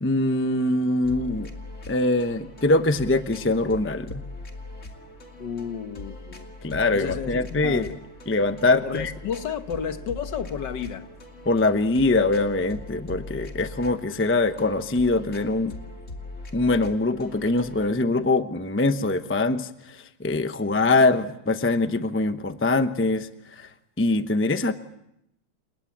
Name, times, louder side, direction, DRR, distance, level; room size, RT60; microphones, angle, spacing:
voice 1, 0.0-1.5 1.9-4.2 6.6-7.9 8.3-9.1 11.5-15.7 16.5-23.7 24.0-24.7, left 2 dB, 15° left, 0.5 m, -23 dB
sound 1, 1.0-17.9, left 2 dB, 40° left, 2.8 m, -41 dB
voice 2, 5.4-6.5 6.9-8.0 8.8-11.1, left 7 dB, 65° left, 1.9 m, -32 dB
30.0 x 18.5 x 7.4 m
omnidirectional pair, 2.1 m